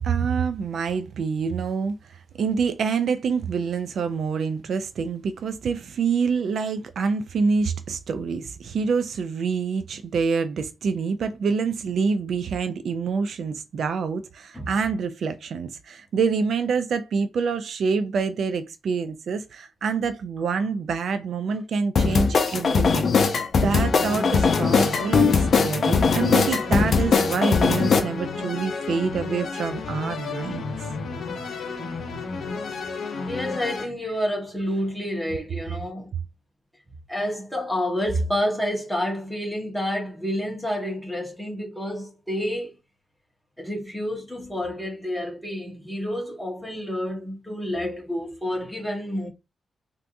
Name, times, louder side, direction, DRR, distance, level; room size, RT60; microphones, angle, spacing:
voice 1, 0.0-23.3 23.6-30.6 35.7-35.8, right 5 dB, 70° right, 0.3 m, -26 dB
sound 1, 22.0-28.0, left 5 dB, 55° left, 0.6 m, -20 dB
sound 2, 23.8-33.9, left 4 dB, 80° left, 0.8 m, -32 dB
voice 2, 32.5-36.1 37.1-42.8 43.6-49.3, equal, ahead, 1.2 m, -29 dB
3.4 x 2.7 x 2.5 m
wide cardioid pair, 135°, 0 cm